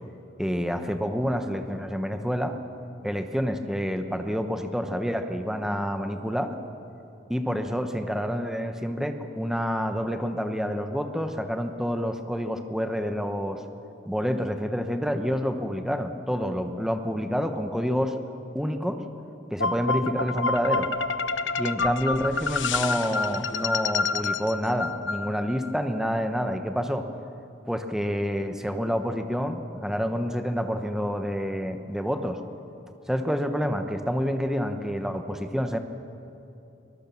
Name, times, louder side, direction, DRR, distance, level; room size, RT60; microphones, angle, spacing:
voice 1, 0.4-2.6 3.0-6.5 7.3-13.6 14.1-18.2 18.5-19.0 19.5-20.9 21.6-27.0 27.7-32.4 33.1-35.8, equal, 5° right, 6 dB, 1.0 m, -28 dB
sound 1, 19.6-25.7, left 4 dB, 90° left, 0.9 m, -28 dB
23.0 x 21.5 x 7.1 m, 2.8 s
head